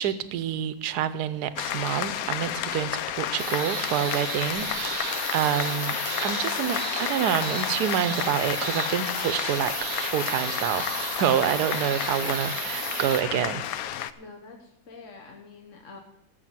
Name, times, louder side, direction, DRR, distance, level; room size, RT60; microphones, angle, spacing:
voice 1, 0.0-6.0 6.2-10.9 11.2-13.6, right 9 dB, 65° right, 14 dB, 1.2 m, -27 dB
sound 1, 1.6-14.1, left 10 dB, 70° left, 0.9 m, -31 dB
sound 2, 3.4-13.2, right 13 dB, 90° right, 1.4 m, -35 dB
voice 2, 12.2-12.5 14.2-16.0, left 4 dB, 45° left, 1 dB, 1.5 m, -46 dB
14.0 x 6.9 x 7.4 m, 0.82 s
omnidirectional pair, 2.0 m